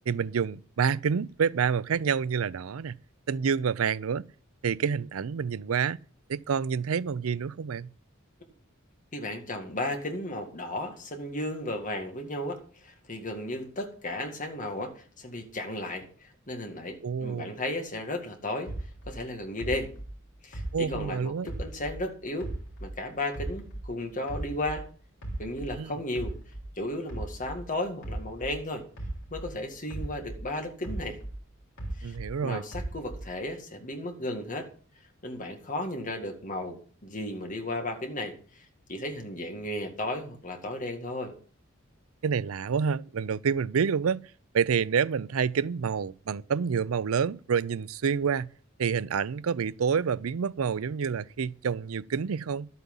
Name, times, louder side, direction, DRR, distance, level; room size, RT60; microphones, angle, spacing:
voice 1, 0.1-2.9 3.3-4.2 4.6-6.0 6.3-7.9 17.0-17.5 20.7-21.5 25.7-25.9 32.0-32.6 42.2-44.2 44.5-48.5 48.8-52.7, right 6 dB, 90° right, 0.5 m, -28 dB
voice 2, 9.1-18.7 19.1-19.9 20.4-22.5 22.8-24.9 25.4-26.3 26.8-28.9 29.3-31.2 32.0-32.2 32.4-34.7 35.2-38.6 38.9-41.4, left 1 dB, 40° left, 2.0 m, -34 dB
sound 1, 18.7-22.1 22.4-24.9 25.2-29.6 29.9-32.4 32.7-33.4, right 1 dB, 60° left, 3.5 m, -38 dB
12.0 x 8.4 x 5.5 m
head